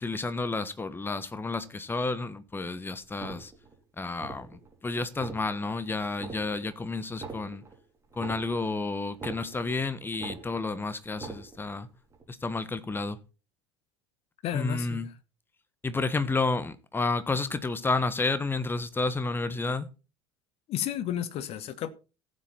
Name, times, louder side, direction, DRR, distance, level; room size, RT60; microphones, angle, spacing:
voice 1, 0.0-3.5 4.0-7.6 8.2-11.9 12.3-13.2 14.5-15.1 15.8-19.9, left 3 dB, 15° left, 1.2 m, -31 dB
sound 1, 3.1-3.8 4.1-4.7 5.1-5.8 6.1-6.8 7.1-9.8 10.1-10.8 11.1-11.8 12.1-12.2, right 4 dB, 20° right, 4.2 m, -43 dB
voice 2, 14.4-15.1 20.7-21.9, left 11 dB, 45° left, 1.3 m, -32 dB
15.5 x 7.5 x 4.3 m
figure-of-eight pair, 70°, 14 cm